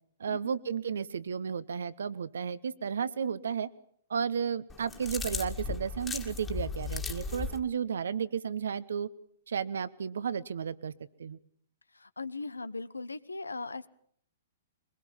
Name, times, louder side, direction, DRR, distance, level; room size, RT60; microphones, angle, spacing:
voice 1, 0.2-3.7 4.1-9.1 9.5-10.9 11.2-11.4, right 7 dB, 70° right, 16 dB, 1.1 m, -33 dB
sound 1, 4.7-7.6, left 4 dB, 15° left, 2.0 m, -36 dB
voice 2, 11.9-13.9, left 3 dB, 90° left, 16 dB, 1.0 m, -39 dB
22.5 x 21.0 x 7.2 m, 0.66 s
figure-of-eight pair, 115°, 0 cm